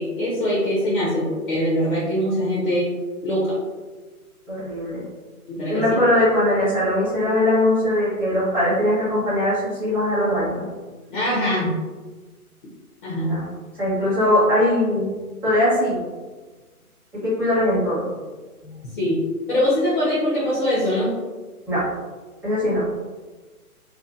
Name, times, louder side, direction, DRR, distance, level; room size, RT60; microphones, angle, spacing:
voice 1, 0.0-2.9 3.2-3.6 5.5-5.8 11.1-11.8 13.0-13.3 19.0-19.2 19.5-21.1, equal, 35° left, -6 dB, 0.6 m, -22 dB
voice 2, 4.5-5.0 5.7-10.7 13.2-13.5 13.7-15.1 15.4-16.0 17.2-18.1 18.6-18.8 21.7-21.8 22.4-22.9, left 1 dB, 5° right, -13 dB, 0.8 m, -21 dB
2.7 x 2.3 x 2.3 m, 1.3 s
figure-of-eight pair, 135°, 45 cm